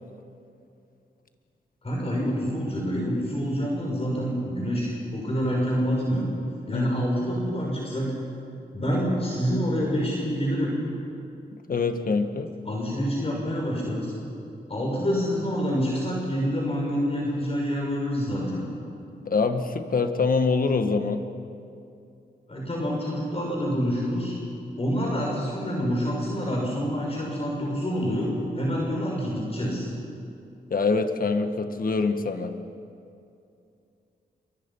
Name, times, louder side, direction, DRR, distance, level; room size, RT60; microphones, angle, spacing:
voice 1, 1.8-6.3 6.7-8.1 8.7-10.8 12.7-14.1 14.7-18.7 22.5-24.4 24.8-28.3 28.6-29.9, equal, 35° left, -3 dB, 5.9 m, -27 dB
voice 2, 6.7-7.0 11.7-12.5 19.2-21.2 30.7-32.5, left 4 dB, 55° left, 7 dB, 1.7 m, -24 dB
27.5 x 24.0 x 5.7 m, 2.6 s
cardioid pair, 80°, 17 cm